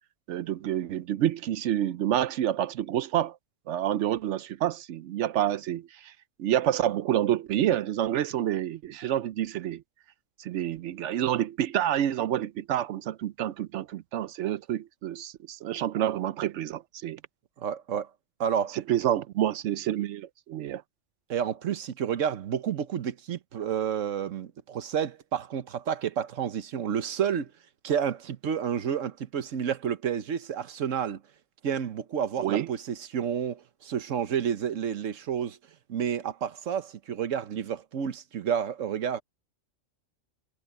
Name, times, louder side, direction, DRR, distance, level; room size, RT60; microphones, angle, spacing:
voice 1, 0.3-3.4 3.7-6.1 6.4-9.8 10.4-17.2 18.7-20.8 32.4-32.7, right 11 dB, 75° right, 0.9 m, -28 dB
voice 2, 17.6-18.1 18.4-18.8 21.3-27.5 27.8-31.2 31.6-35.6 35.9-39.2, right 8 dB, 90° right, 1.3 m, -30 dB
omnidirectional pair, 1.3 m